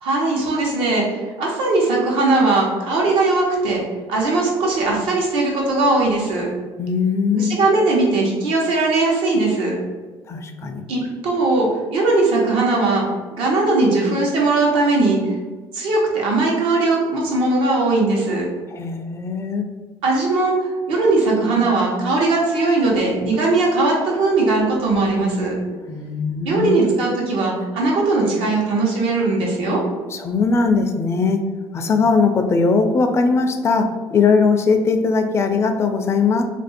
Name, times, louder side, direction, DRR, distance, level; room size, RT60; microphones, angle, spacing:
voice 1, 0.0-1.0 1.4-3.8 4.1-6.5 7.3-9.7 10.9-13.0 13.3-15.3 15.7-18.5 20.0-25.6 26.4-29.8, right 2 dB, 75° right, -2 dB, 1.0 m, -19 dB
voice 2, 6.8-7.6 10.3-10.8 18.7-19.7 25.8-26.9 30.1-31.4 31.7-36.4, left 4 dB, 30° left, 6 dB, 0.4 m, -19 dB
2.8 x 2.6 x 4.1 m, 1.3 s
cardioid pair, 135°, 9 cm